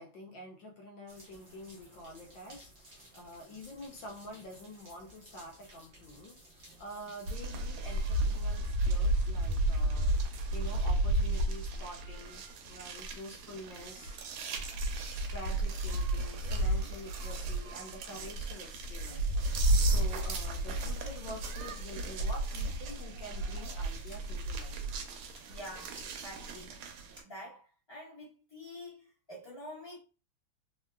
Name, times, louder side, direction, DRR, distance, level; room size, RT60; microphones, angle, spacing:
voice 1, 0.0-14.5 15.1-24.9, left 1 dB, 70° left, 1.2 m, -47 dB
sound 1, 1.1-7.4, right 1 dB, 60° right, 0.5 m, -56 dB
sound 2, 7.3-27.2, right 1 dB, 80° right, 1.4 m, -33 dB
sound 3, 19.9-20.5 21.0-22.2 22.5-27.3, right 1 dB, 20° right, 0.8 m, -58 dB
voice 2, 25.4-26.7 27.2-30.0, left 1 dB, 20° left, 0.7 m, -47 dB
3.5 x 2.2 x 2.2 m
omnidirectional pair, 2.4 m